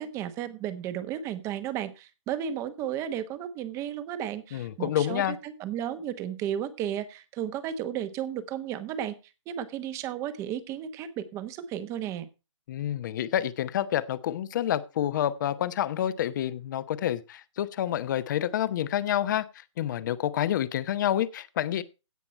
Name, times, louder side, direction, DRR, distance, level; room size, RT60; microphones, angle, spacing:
voice 1, 0.0-9.1 9.5-12.3, right 10 dB, 20° right, 1.1 m, -34 dB
voice 2, 4.5-5.4 12.7-19.4 19.8-21.8, left 11 dB, 40° left, 0.9 m, -28 dB
16.5 x 5.9 x 4.2 m
hypercardioid pair, 145°, 16 cm